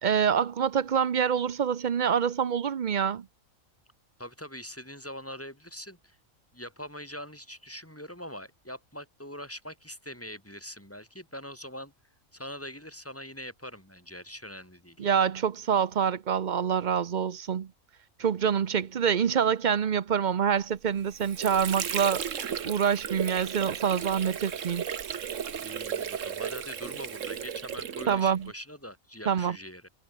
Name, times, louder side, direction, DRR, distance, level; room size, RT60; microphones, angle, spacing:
voice 1, 0.0-3.2 15.0-17.7 18.2-22.2 22.6-24.8 28.1-28.5 29.3-29.6, right 7 dB, 45° right, 0.7 m, -26 dB
voice 2, 4.2-6.2 6.5-11.9 12.3-15.1 25.6-29.9, equal, 10° left, 4.8 m, -43 dB
Water / Sink (filling or washing), 20.8-28.5, right 8 dB, 70° right, 1.5 m, -35 dB
omnidirectional pair, 1.4 m